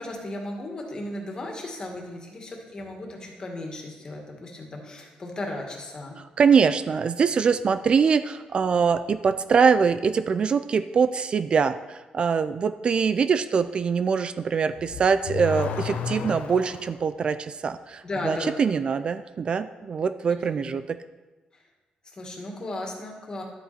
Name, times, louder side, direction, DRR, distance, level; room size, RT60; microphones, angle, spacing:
voice 1, 0.0-6.1 18.0-19.0 20.6-20.7 21.5-21.6 22.1-23.4, left 1 dB, 30° left, 1 dB, 2.1 m, -35 dB
voice 2, 6.4-21.0, right 6 dB, 40° right, 12 dB, 0.3 m, -23 dB
Car / Accelerating revving vroom, 14.7-17.0, left 7 dB, 75° left, 0.8 m, -32 dB
11.5 x 8.3 x 4.3 m, 1.2 s
cardioid pair, 135°, 3 cm